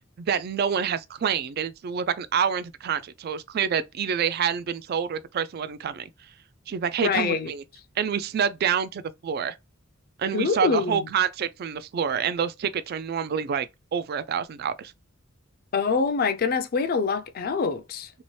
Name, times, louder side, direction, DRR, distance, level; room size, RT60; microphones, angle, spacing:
voice 1, 0.2-6.1 6.7-7.6 8.0-9.6 10.2-14.9, right 7 dB, 50° right, 0.3 m, -27 dB
voice 2, 7.0-7.5 10.3-11.1 15.7-18.1, left 5 dB, 45° left, 0.4 m, -25 dB
3.0 x 2.8 x 3.1 m
head